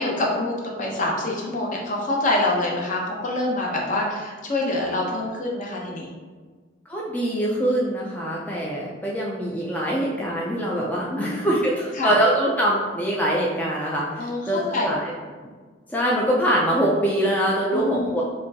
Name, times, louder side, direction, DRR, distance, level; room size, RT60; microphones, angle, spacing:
voice 1, 0.0-6.1 11.0-11.6 12.0-12.1 14.2-14.9 17.7-18.1, left 2 dB, 45° left, -2 dB, 0.8 m, -26 dB
voice 2, 6.9-15.1 15.9-18.2, right 1 dB, 10° left, -4 dB, 0.4 m, -23 dB
5.0 x 2.2 x 2.8 m, 1.4 s
head